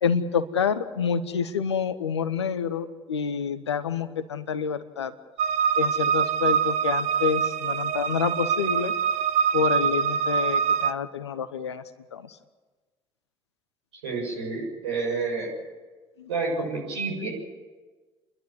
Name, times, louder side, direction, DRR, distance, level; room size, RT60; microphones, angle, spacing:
voice 1, 0.0-5.1 5.8-8.9 9.5-11.8 12.1-12.4 16.2-16.3, left 7 dB, 85° left, 12 dB, 1.0 m, -28 dB
sound 1, 5.4-10.9, right 7 dB, 55° right, 0.8 m, -24 dB
voice 2, 14.0-15.5 16.3-17.3, right 4 dB, 80° right, -1 dB, 7.5 m, -29 dB
30.0 x 12.0 x 9.5 m, 1.3 s
figure-of-eight pair, 55°, 14 cm